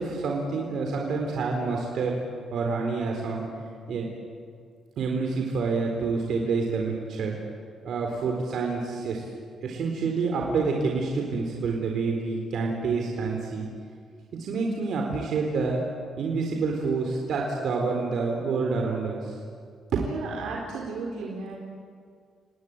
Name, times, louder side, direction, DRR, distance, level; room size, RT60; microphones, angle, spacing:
voice 1, 0.0-2.2 2.5-3.5 3.9-4.1 5.0-7.4 7.8-9.3 9.6-13.7 14.3-15.8 16.2-19.3 19.9-20.0, right 4 dB, 65° right, 1 dB, 4.0 m, -28 dB
voice 2, 20.0-21.6, right 4 dB, 90° right, -2 dB, 4.0 m, -34 dB
29.0 x 19.5 x 9.0 m, 2.2 s
cardioid pair, 115°, 0 cm